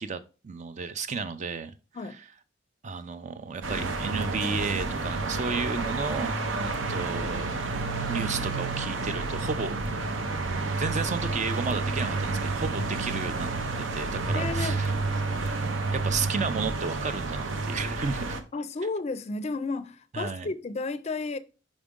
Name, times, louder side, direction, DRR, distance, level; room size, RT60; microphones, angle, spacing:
voice 1, 0.0-1.8 2.8-7.6 8.1-9.7 10.8-13.5 13.8-14.9 15.9-18.4 20.1-20.5, right 4 dB, 40° right, 0.5 m, -32 dB
sound 1, 3.6-18.4, right 3 dB, 90° right, 0.7 m, -30 dB
voice 2, 14.3-14.8 18.5-21.4, left 3 dB, 35° left, 0.4 m, -32 dB
5.2 x 5.0 x 3.6 m
head